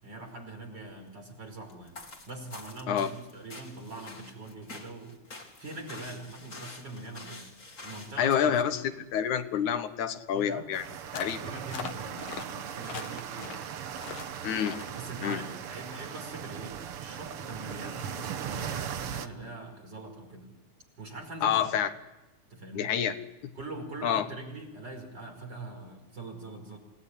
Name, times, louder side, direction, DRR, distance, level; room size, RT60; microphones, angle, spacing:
voice 1, 0.0-2.0 2.3-7.5 7.8-8.9 10.3-11.1 11.4-13.6 14.9-20.5 21.0-21.7 22.5-23.0 23.6-26.8, right 2 dB, 35° right, 3 dB, 5.6 m, -43 dB
sound 1, 1.7-8.3, left 3 dB, 25° left, 2.8 m, -47 dB
voice 2, 8.2-10.9 11.1-11.4 14.4-14.8 15.2-15.4 21.4-21.9 22.7-23.2 23.4-23.5 24.0-24.3, left 9 dB, 85° left, 9 dB, 2.7 m, -28 dB
sound 2, 10.7-19.3, right 9 dB, 60° right, 1.7 m, -38 dB
sound 3, 11.1-11.4 11.7-12.5 12.8-13.7 14.0-14.3 14.6-14.9, left 8 dB, 55° left, 1.7 m, -40 dB
28.0 x 18.5 x 9.9 m, 1.0 s
omnidirectional pair, 3.3 m